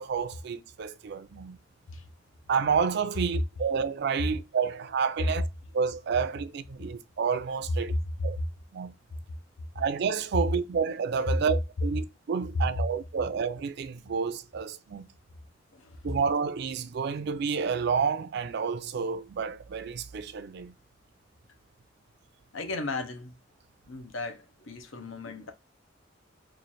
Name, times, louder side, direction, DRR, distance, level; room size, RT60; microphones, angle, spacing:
voice 1, 0.0-1.6 2.5-5.5 5.7-7.9 8.2-8.4 8.7-8.9 9.8-15.1 16.0-20.7, right 6 dB, 60° right, 0.4 m, -30 dB
voice 2, 7.9-8.5 12.5-12.6 15.7-16.0 22.5-23.3 23.9-25.5, left 2 dB, 90° left, 0.7 m, -34 dB
3.1 x 2.4 x 4.0 m
head